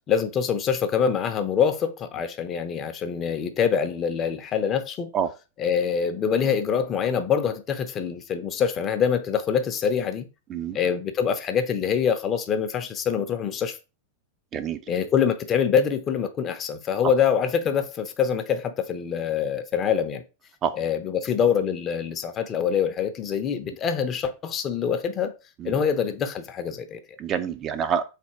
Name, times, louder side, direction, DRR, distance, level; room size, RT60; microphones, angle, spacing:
voice 1, 0.1-5.1 5.6-10.3 10.7-13.8 14.9-20.2 20.8-25.3 25.6-27.0, left 7 dB, 30° left, 0.6 m, -25 dB
voice 2, 27.2-28.0, right 8 dB, 30° right, 0.4 m, -27 dB
4.1 x 3.3 x 2.9 m
figure-of-eight pair, 90°, 0 cm